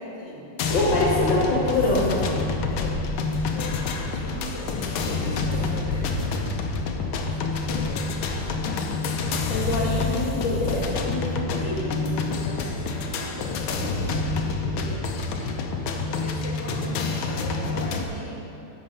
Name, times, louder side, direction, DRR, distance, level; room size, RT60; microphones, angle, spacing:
voice 1, 0.0-1.1 2.7-3.0 3.5-6.5 7.0-10.2 11.6-15.6 16.1-18.5, left 1 dB, 35° left, -4 dB, 2.2 m, -39 dB
sound 1, 0.6-18.0, left 4 dB, 80° left, 1.6 m, -28 dB
voice 2, 0.7-2.3 9.5-11.7, left 2 dB, 65° left, -4 dB, 2.0 m, -24 dB
sound 2, 1.7-8.8 9.4-9.5 10.4-13.9 14.4-14.5 14.9-15.1, left 1 dB, 5° left, 1.4 m, -37 dB
11.0 x 7.8 x 5.4 m, 2.8 s
omnidirectional pair, 2.2 m